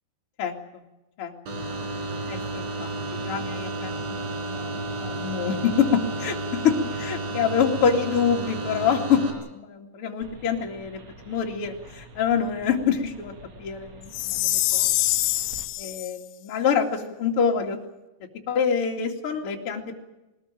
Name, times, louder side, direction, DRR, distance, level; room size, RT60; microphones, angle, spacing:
voice 1, 0.4-0.8 1.2-1.3 2.3-13.3 13.6-14.9 15.8-17.8 18.5-19.9, left 7 dB, 40° left, 2 dB, 2.3 m, -26 dB
sound 1, 1.5-9.3, right 2 dB, 70° right, 5.9 m, -32 dB
sound 2, 10.2-15.6, right 1 dB, 40° right, 2.8 m, -47 dB
Chime, 14.1-16.1, left 16 dB, 80° left, 3.3 m, -24 dB
21.0 x 20.0 x 9.0 m, 1.0 s
omnidirectional pair, 5.7 m